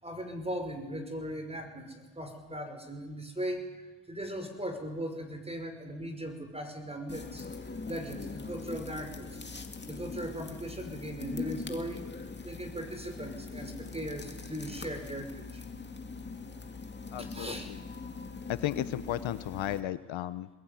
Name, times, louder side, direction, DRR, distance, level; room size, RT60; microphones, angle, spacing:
voice 1, 0.0-7.5 7.9-9.3 9.9-12.1 12.4-15.6 17.2-17.7, equal, 10° right, 6 dB, 5.7 m, -38 dB
sound 1, 7.1-19.8, left 4 dB, 20° left, 2.3 m, -42 dB
voice 2, 17.1-17.8 18.5-20.5, left 13 dB, 65° left, 13 dB, 1.0 m, -34 dB
23.5 x 20.5 x 9.5 m, 1.2 s
cardioid pair, 95°, 50 cm